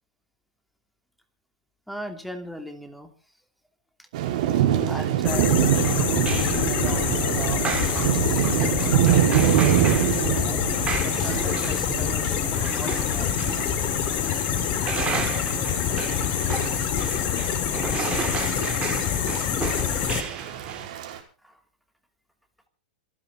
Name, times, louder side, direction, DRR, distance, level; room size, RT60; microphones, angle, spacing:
voice 1, 1.9-3.1 4.9-6.3 6.6-10.6 11.0-13.4 14.8-14.9 21.1-21.6, equal, ahead, 5 dB, 2.8 m, -39 dB
Thunder / Rain, 4.1-21.2, right 11 dB, 60° right, 5.1 m, -26 dB
sound 1, 5.2-20.2, left 10 dB, 40° left, 2.9 m, -26 dB
sound 2, 5.5-20.9, right 7 dB, 25° right, 3.3 m, -34 dB
26.5 x 10.5 x 4.1 m, 0.36 s
hypercardioid pair, 125°, 4 cm